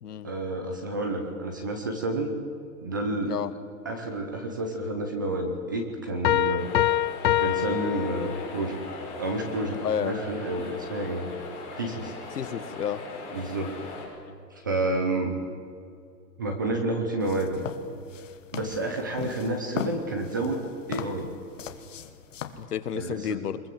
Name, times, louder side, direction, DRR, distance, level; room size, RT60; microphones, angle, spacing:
voice 1, 0.2-2.3 2.8-3.3 3.8-6.7 7.4-8.8 9.2-11.2 11.8-12.1 13.3-13.8 14.5-15.4 16.4-17.7 18.5-21.3 22.9-23.4, right 2 dB, 15° right, 4 dB, 0.6 m, -30 dB
sound 1, 6.2-8.7, left 11 dB, 85° left, 0.9 m, -25 dB
sound 2, 6.6-14.0, left 3 dB, 15° left, 6.0 m, -40 dB
voice 2, 9.8-10.2 12.3-13.0 22.6-23.6, left 9 dB, 70° left, 13 dB, 1.6 m, -31 dB
sound 3, 17.2-22.6, left 8 dB, 50° left, 1.6 m, -39 dB
23.0 x 21.5 x 7.6 m, 2.5 s
hypercardioid pair, 165°, 49 cm